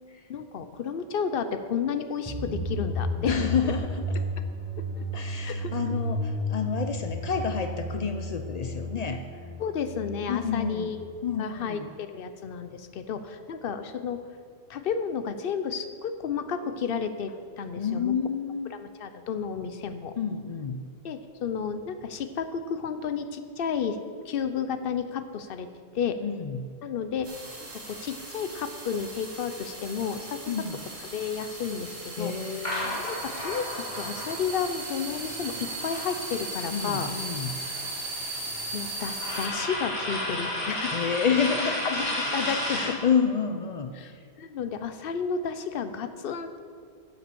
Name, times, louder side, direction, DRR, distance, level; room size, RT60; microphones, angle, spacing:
voice 1, 0.3-3.4 4.8-5.0 5.4-5.7 9.6-11.1 11.4-14.2 14.7-18.1 18.7-20.2 21.0-24.0 24.3-25.7 25.9-26.2 26.8-27.3 27.6-30.4 31.1-32.3 32.8-37.1 38.7-41.0 41.9-42.8 44.0-44.1 44.4-46.6, left 6 dB, 55° left, 9 dB, 0.8 m, -32 dB
sound 1, 2.3-11.1, equal, 5° left, 1.4 m, -33 dB
voice 2, 3.3-4.2 5.1-9.2 10.3-11.0 11.2-11.9 17.8-18.7 20.2-20.9 26.2-26.7 30.5-30.8 32.2-33.0 36.7-37.6 40.9-41.9 42.7-44.2, left 6 dB, 85° left, 6 dB, 0.3 m, -29 dB
sound 2, 27.2-39.5, right 2 dB, 65° right, 2.3 m, -37 dB
sound 3, 32.6-36.7 37.0-43.0, left 1 dB, 35° left, 2.9 m, -33 dB
10.5 x 7.2 x 6.9 m, 2.1 s
omnidirectional pair, 1.4 m